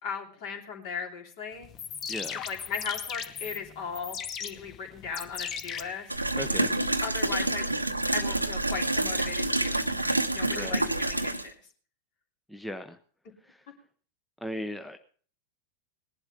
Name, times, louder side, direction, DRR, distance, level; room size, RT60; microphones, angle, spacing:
voice 1, 0.0-1.7 2.4-6.1 7.0-7.7 8.1-11.5, left 6 dB, 45° left, 2 dB, 3.1 m, -37 dB
sound 1, 1.6-6.6, left 7 dB, 30° left, 1.1 m, -38 dB
voice 2, 2.1-2.4 6.3-6.7 10.5-10.8 12.5-13.0 13.4-13.7 14.4-15.0, equal, 5° left, 7 dB, 0.8 m, -37 dB
sound 2, 6.1-11.5, right 2 dB, 85° right, 0.9 m, -28 dB
19.5 x 11.5 x 3.6 m, 0.43 s
figure-of-eight pair, 90°, 0 cm